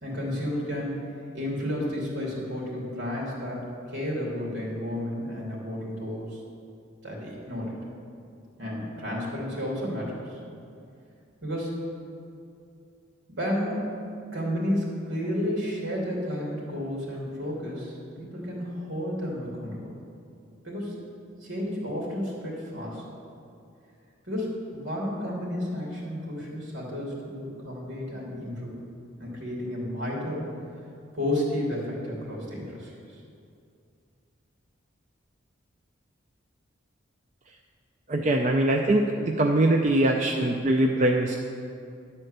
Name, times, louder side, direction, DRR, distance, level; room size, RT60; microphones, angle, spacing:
voice 1, 0.0-1.0 1.3-6.4 7.0-7.8 8.6-10.4 11.4-11.8 13.4-14.0 14.3-19.9 20.6-21.0 21.4-23.0 24.3-28.8 29.2-30.6 31.1-32.9, left 1 dB, 70° right, -3 dB, 2.7 m, -32 dB
voice 2, 38.1-41.4, right 1 dB, 35° right, 2 dB, 0.4 m, -22 dB
11.0 x 4.4 x 7.9 m, 2.5 s
head